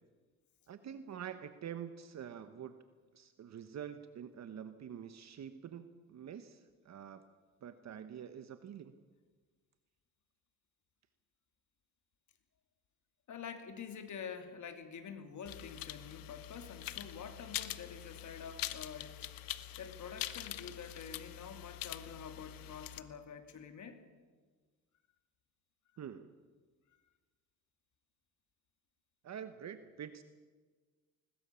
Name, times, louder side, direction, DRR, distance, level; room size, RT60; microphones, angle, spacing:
voice 1, 0.7-2.8 3.1-7.3 7.6-8.9 26.0-26.3 29.2-30.2, right 8 dB, 50° right, 10 dB, 1.1 m, -46 dB
voice 2, 13.3-19.3 19.8-24.0, left 6 dB, 55° left, 7 dB, 2.7 m, -47 dB
sound 1, 15.5-23.0, left 14 dB, 75° left, 1.2 m, -44 dB
21.0 x 20.5 x 7.0 m, 1.4 s
cardioid pair, 100°, 35 cm